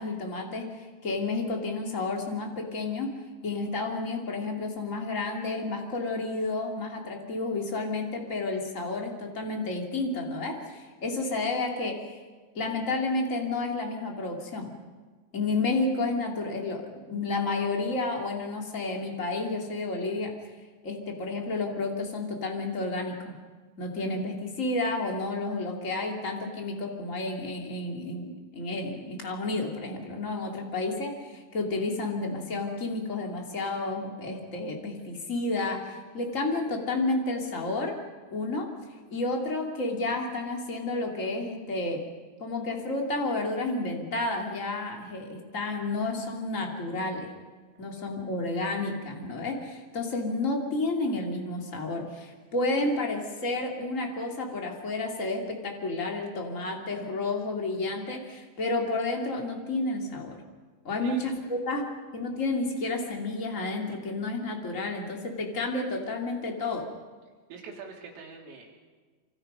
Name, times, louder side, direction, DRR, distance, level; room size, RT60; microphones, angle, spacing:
voice 1, 0.0-3.1 3.4-12.2 12.5-14.7 15.3-20.3 20.8-23.3 23.8-37.9 38.3-38.7 39.1-42.0 42.4-47.3 47.8-60.4 60.8-66.9, left 2 dB, 25° left, 1 dB, 1.8 m, -31 dB
voice 2, 61.0-61.4 67.5-68.7, right 5 dB, 85° right, 0 dB, 5.9 m, -44 dB
27.0 x 26.5 x 5.6 m, 1.4 s
omnidirectional pair, 5.8 m